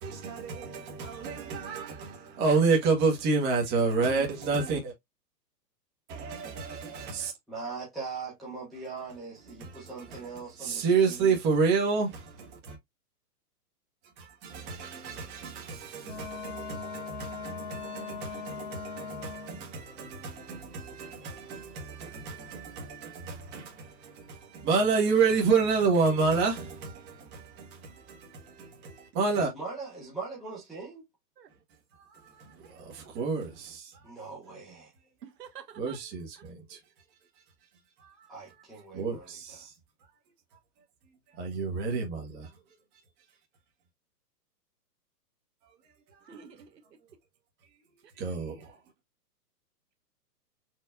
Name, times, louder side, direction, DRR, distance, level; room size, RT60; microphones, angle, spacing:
voice 1, 0.0-2.1 2.4-4.9 6.1-7.3 9.6-10.3 10.6-12.8 14.2-29.5 31.9-34.1 35.8-36.8 38.0-38.3 38.9-39.7 40.0-40.2 41.3-42.5 46.1-46.4 48.1-48.8, right 4 dB, 20° right, 1.4 m, -30 dB
voice 2, 7.5-11.4 29.4-31.0 34.0-34.9 38.3-39.6, right 4 dB, ahead, 0.6 m, -41 dB
Wind instrument woodwind instrument, 16.0-19.7, left 6 dB, 30° left, 1.6 m, -40 dB
voice 3, 35.2-36.0 36.4-36.5 46.3-46.8, right 7 dB, 80° right, 1.4 m, -48 dB
4.7 x 3.0 x 2.4 m
hypercardioid pair, 155°, 48 cm